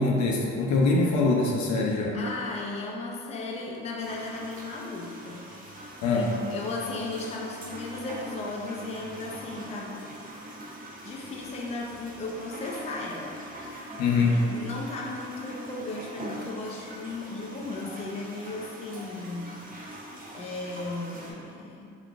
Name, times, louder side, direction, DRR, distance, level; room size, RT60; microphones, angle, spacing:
voice 1, 0.0-2.2 6.0-6.3 14.0-14.4, left 3 dB, 70° left, -1 dB, 0.6 m, -23 dB
voice 2, 2.1-10.0 11.0-13.4 14.1-19.6 19.9-22.0, left 3 dB, 20° left, -2 dB, 0.4 m, -36 dB
sound 1, 4.0-21.3, right 1 dB, 30° right, 0.6 m, -43 dB
3.8 x 2.3 x 2.3 m, 2.4 s
cardioid pair, 90°, 30 cm